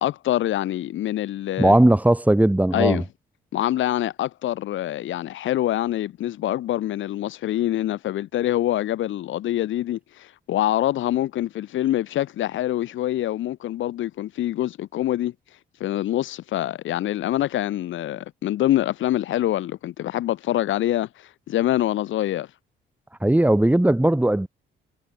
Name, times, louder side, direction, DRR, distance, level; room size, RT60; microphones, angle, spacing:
voice 1, 0.0-1.7 2.7-3.0 3.5-15.3 15.8-22.5, left 13 dB, 80° left, 1.9 m, -25 dB
voice 2, 1.6-3.0 23.2-24.5, right 1 dB, 5° right, 3.8 m, -18 dB
cardioid pair, 90°, 20 cm